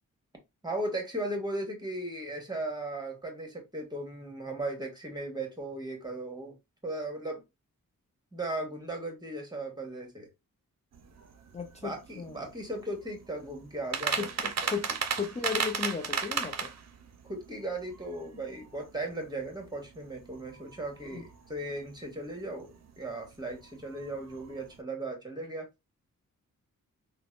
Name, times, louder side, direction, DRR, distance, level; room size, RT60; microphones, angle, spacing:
voice 1, 0.6-6.5 6.8-7.4 8.3-10.3 11.8-14.3 17.2-25.7, right 1 dB, 10° right, 1.4 m, -37 dB
sound 1, 10.9-24.8, right 6 dB, 50° right, 0.6 m, -38 dB
voice 2, 11.5-12.5 14.2-16.7 21.1-21.3, left 5 dB, 20° left, 0.5 m, -36 dB
3.3 x 2.2 x 2.4 m
cardioid pair, 50°, 35 cm